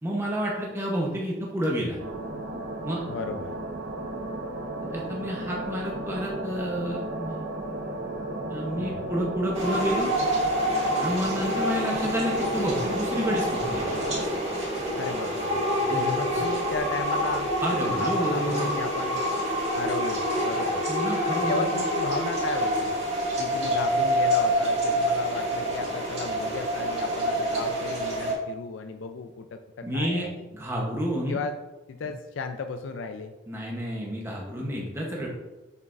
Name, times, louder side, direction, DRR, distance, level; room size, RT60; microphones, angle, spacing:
voice 1, 0.0-2.0 2.8-3.0 4.9-7.5 8.5-10.1 11.0-14.0 15.7-16.4 17.6-18.7 20.9-21.7 29.8-31.4 33.5-35.3, equal, 15° right, -3 dB, 0.8 m, -30 dB
sound 1, 2.0-14.2, right 1 dB, 80° right, 0.9 m, -34 dB
voice 2, 3.1-3.5 8.8-9.1 15.0-15.7 16.0-17.5 17.8-19.2 19.8-20.9 21.3-23.0 23.4-30.5 31.3-31.6 31.9-33.3, left 4 dB, 80° left, 7 dB, 0.4 m, -35 dB
sound 2, 9.5-28.3, equal, 35° right, 2.2 m, -27 dB
7.2 x 6.2 x 2.5 m, 1.1 s
head